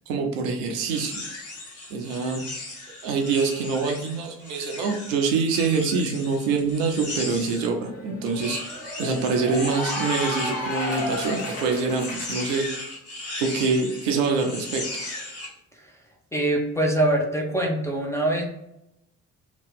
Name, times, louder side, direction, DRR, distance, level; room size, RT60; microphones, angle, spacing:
voice 1, 0.1-1.2 1.9-2.5 3.0-8.6 9.0-12.7 13.4-14.9, right 4 dB, 65° right, 3 dB, 0.6 m, -25 dB
sound 1, 0.8-7.7 8.3-15.5, left 2 dB, 35° left, 1.3 m, -37 dB
Cheering / Applause, 7.1-12.6, left 1 dB, 70° left, 1.0 m, -33 dB
voice 2, 16.3-18.4, right 1 dB, 5° left, 0 dB, 0.6 m, -23 dB
2.8 x 2.2 x 3.6 m, 0.83 s
figure-of-eight pair, 45°, 43 cm